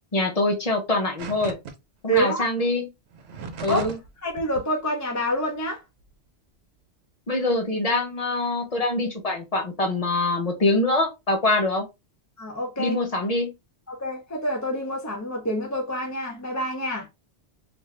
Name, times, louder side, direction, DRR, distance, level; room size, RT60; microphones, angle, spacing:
voice 1, 0.1-1.5 2.0-2.9 3.6-4.0 7.3-11.8 12.8-13.5, left 2 dB, 40° left, 0.8 m, -24 dB
sound 1, 1.2-1.7 2.1-2.2 3.1-4.1 4.4-4.6, right 5 dB, 75° right, 0.9 m, -36 dB
voice 2, 2.1-2.5 3.7-3.9 4.2-5.8 12.4-13.0 13.9-17.1, equal, 25° left, 0.4 m, -27 dB
2.6 x 2.6 x 3.2 m
omnidirectional pair, 1.1 m